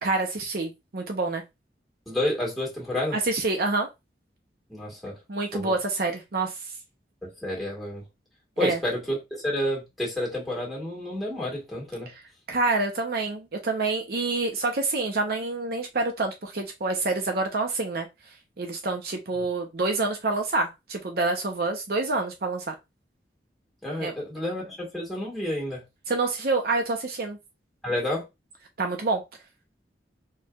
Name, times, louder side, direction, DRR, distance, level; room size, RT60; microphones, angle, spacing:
voice 1, 0.0-1.4 3.1-3.9 5.3-6.5 8.6-8.8 12.5-18.1 18.6-22.7 24.0-24.1 26.1-27.4 28.8-29.2, right 3 dB, 60° right, 0.7 m, -27 dB
voice 2, 2.1-3.2 4.7-5.2 5.5-5.7 7.4-8.0 8.6-12.1 23.8-25.8 27.8-28.2, left 1 dB, ahead, 2.0 m, -30 dB
4.5 x 3.2 x 2.3 m
head